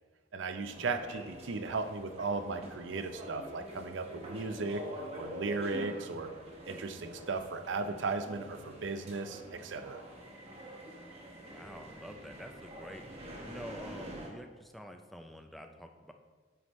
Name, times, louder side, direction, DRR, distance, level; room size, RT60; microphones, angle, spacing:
voice 1, 0.3-4.9 5.1-6.3 6.7-10.0, right 3 dB, 80° right, 8 dB, 0.5 m, -36 dB
sound 1, 0.7-14.3, right 1 dB, 35° right, 1.2 m, -46 dB
voice 2, 11.5-13.0 13.4-16.1, equal, ahead, 5 dB, 0.4 m, -48 dB
9.4 x 5.0 x 3.1 m, 1.4 s
head